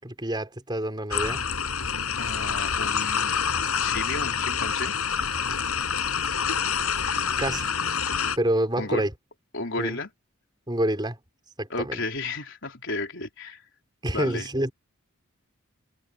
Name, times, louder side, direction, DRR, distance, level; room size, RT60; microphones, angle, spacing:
voice 1, 0.0-1.4 7.4-7.7 8.4-9.1 9.8-10.0 10.7-11.2 11.6-12.0 14.0-14.7, right 1 dB, 20° right, 4.2 m, -27 dB
sound 1, 1.1-8.4, left 6 dB, 90° left, 7.5 m, -27 dB
voice 2, 2.2-3.3 3.8-5.0 8.8-9.0 9.5-10.1 11.7-13.6 14.1-14.5, left 3 dB, 60° left, 4.1 m, -33 dB
head